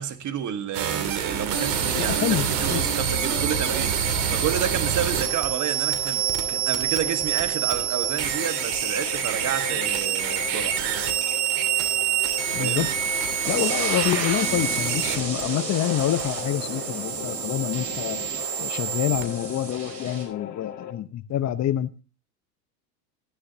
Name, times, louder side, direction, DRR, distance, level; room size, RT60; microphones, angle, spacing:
voice 1, 0.0-6.2 6.5-10.8 12.6-12.9, right 9 dB, 35° right, 1.6 m, -30 dB
sound 1, 0.7-19.2, right 9 dB, 60° right, 2.6 m, -27 dB
sound 2, 1.5-20.9, left 10 dB, 90° left, 2.1 m, -39 dB
voice 2, 1.9-2.8 12.5-12.9 13.5-18.2 18.6-21.9, left 12 dB, 35° left, 0.9 m, -27 dB
sound 3, 13.4-20.2, right 5 dB, 90° right, 4.5 m, -33 dB
16.0 x 9.8 x 2.8 m
hypercardioid pair, 100°, 48 cm